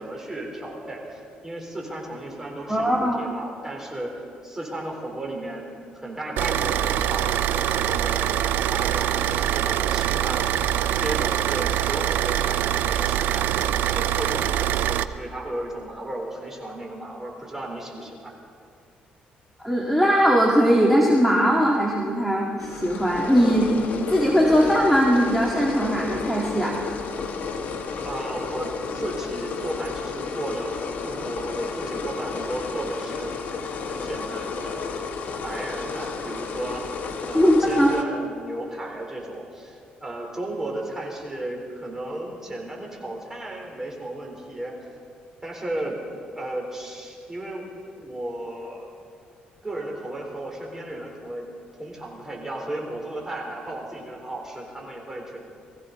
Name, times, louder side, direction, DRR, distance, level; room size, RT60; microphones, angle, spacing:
voice 1, 0.0-4.1 4.4-5.7 5.9-8.3 8.7-10.6 10.9-13.5 13.9-18.3 28.0-33.4 33.9-35.0 35.4-36.8 37.3-44.7 45.4-45.9 46.3-47.7 48.0-48.9 49.6-51.5 51.8-55.4, right 1 dB, 15° right, -1 dB, 4.0 m, -34 dB
voice 2, 2.7-3.2 19.6-26.8 37.3-37.9, equal, ahead, -3 dB, 1.8 m, -20 dB
Car / Idling, 6.4-15.0, right 11 dB, 80° right, 0.5 m, -24 dB
sound 1, 22.6-38.0, left 5 dB, 60° left, 1.4 m, -32 dB
21.5 x 15.0 x 4.2 m, 2.2 s
cardioid pair, 100°, 3 cm